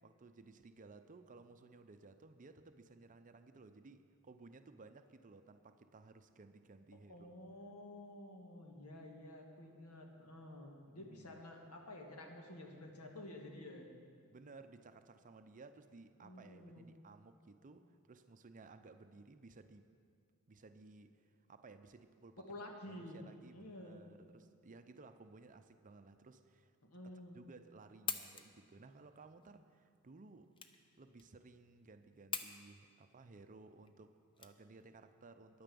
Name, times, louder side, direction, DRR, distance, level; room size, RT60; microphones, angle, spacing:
voice 1, 0.0-7.4 10.9-11.4 14.3-19.9 20.5-22.4 22.9-26.8 27.1-30.5 31.0-35.6, right 3 dB, 35° right, 9 dB, 0.6 m, -58 dB
voice 2, 6.9-13.9 16.2-17.0 22.4-23.2 23.5-24.0 26.8-27.4, left 1 dB, 85° left, 2 dB, 1.7 m, -51 dB
sound 1, 28.0-35.1, left 6 dB, 25° left, 0.6 m, -47 dB
11.0 x 9.4 x 6.9 m, 2.1 s
head